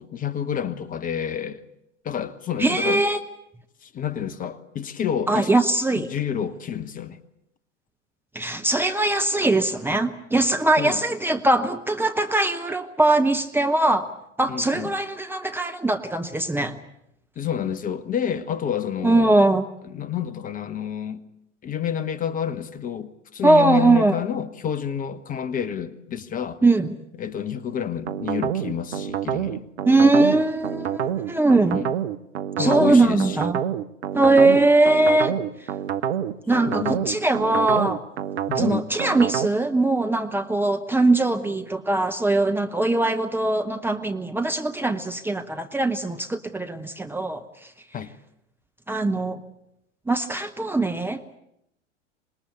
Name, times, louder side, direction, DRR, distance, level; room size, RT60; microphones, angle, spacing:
voice 1, 0.0-1.6 2.0-3.1 3.8-5.5 6.0-7.2 10.8-11.0 14.5-14.9 17.4-19.4 19.9-21.2 21.6-26.6 27.2-29.7 31.7-31.9 32.6-33.4 36.7-37.1 38.5-38.9 47.9-48.1, left 8 dB, 25° left, 13 dB, 1.1 m, -29 dB
voice 2, 2.6-3.2 5.3-6.1 8.3-14.1 14.4-16.8 19.0-19.6 23.4-24.2 26.6-26.9 29.9-31.8 32.6-33.6 34.1-35.4 36.5-38.0 38.6-47.4 48.9-49.4 50.1-51.2, right 2 dB, 5° right, 6 dB, 0.9 m, -21 dB
sound 1, 28.1-39.5, right 9 dB, 60° right, 1.0 m, -27 dB
26.0 x 20.5 x 8.2 m, 0.80 s
figure-of-eight pair, 90°, 36 cm